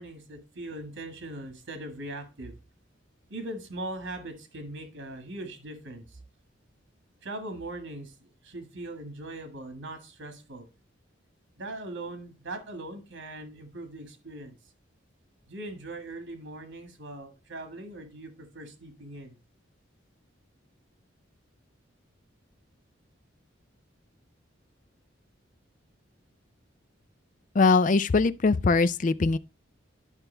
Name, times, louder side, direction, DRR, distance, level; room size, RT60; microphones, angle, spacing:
voice 1, 0.0-2.5 3.3-6.2 7.2-10.7 11.6-14.6 15.5-19.4, right 1 dB, 90° right, 1.7 m, -40 dB
voice 2, 27.5-29.4, left 4 dB, 40° left, 0.4 m, -22 dB
11.0 x 5.7 x 3.3 m
head